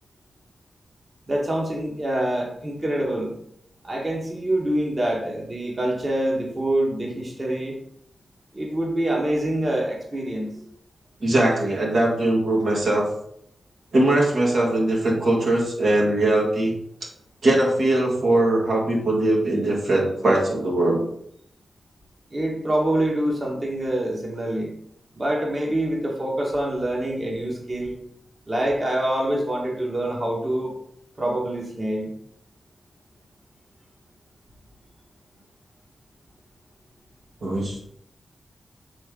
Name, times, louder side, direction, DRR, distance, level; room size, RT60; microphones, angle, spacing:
voice 1, 1.3-3.3 3.8-7.8 8.5-10.6 22.3-24.7 25.1-28.0 28.5-30.7 31.2-32.1, right 1 dB, 35° right, -2 dB, 1.5 m, -25 dB
voice 2, 11.2-13.0 13.9-16.7 17.4-21.0 37.4-37.8, right 1 dB, 75° right, -2 dB, 1.9 m, -21 dB
7.7 x 3.4 x 3.8 m, 0.71 s
cardioid pair, 55°, 0 cm